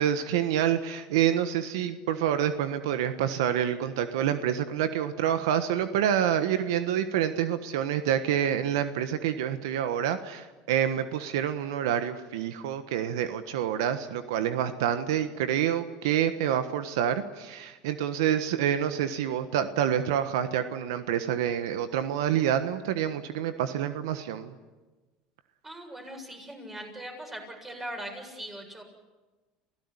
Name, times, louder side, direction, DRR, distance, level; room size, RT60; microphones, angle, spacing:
voice 1, 0.0-24.5, right 10 dB, 85° right, 10 dB, 1.3 m, -27 dB
voice 2, 25.6-28.8, right 1 dB, 15° right, 3 dB, 7.1 m, -40 dB
29.0 x 16.5 x 9.8 m, 1.2 s
supercardioid pair, 110°, 2 cm